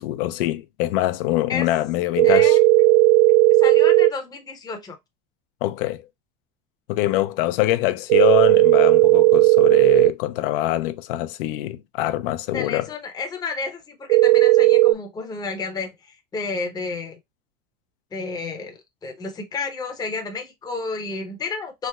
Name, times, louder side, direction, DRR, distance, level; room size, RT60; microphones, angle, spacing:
voice 1, 0.0-2.6 5.6-6.0 6.9-12.9, left 15 dB, 65° left, 0.5 m, -24 dB
voice 2, 2.2-3.0 3.6-5.0 12.5-17.2 18.1-21.9, left 4 dB, 15° left, 0.6 m, -31 dB
sound 1, 2.2-4.1 8.1-10.1 14.1-14.9, right 19 dB, 55° right, 0.4 m, -15 dB
3.3 x 2.7 x 2.2 m
supercardioid pair, 115°, 29 cm